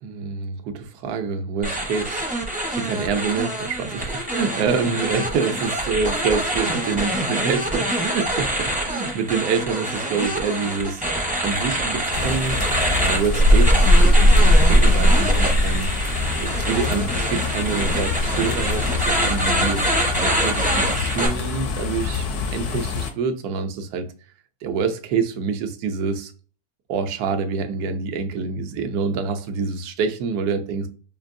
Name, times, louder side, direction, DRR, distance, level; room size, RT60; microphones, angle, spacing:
voice 1, 0.0-2.3 2.7-12.6 12.9-15.9 16.4-19.8 20.2-24.1 24.6-26.3 26.9-30.9, right 5 dB, 75° right, 1.1 m, -26 dB
sound 1, 1.6-21.3, right 1 dB, 10° right, 0.4 m, -25 dB
sound 2, 12.1-23.1, left 1 dB, 75° left, 1.2 m, -20 dB
5.2 x 2.5 x 2.5 m
omnidirectional pair, 1.7 m